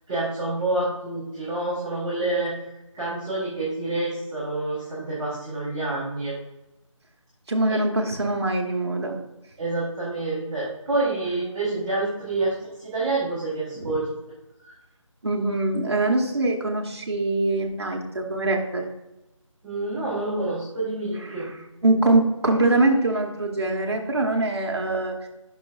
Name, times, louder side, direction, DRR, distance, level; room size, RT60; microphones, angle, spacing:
voice 1, 0.1-2.5 2.9-6.3 7.7-7.8 9.6-14.1 14.6-14.7 19.6-21.4, right 2 dB, 10° right, -15 dB, 1.4 m, -28 dB
voice 2, 7.5-9.2 13.8-13.9 15.2-18.8 21.8-25.1, right 2 dB, 50° right, 1 dB, 1.5 m, -23 dB
9.7 x 6.2 x 2.5 m, 0.95 s
figure-of-eight pair, 175°, 17 cm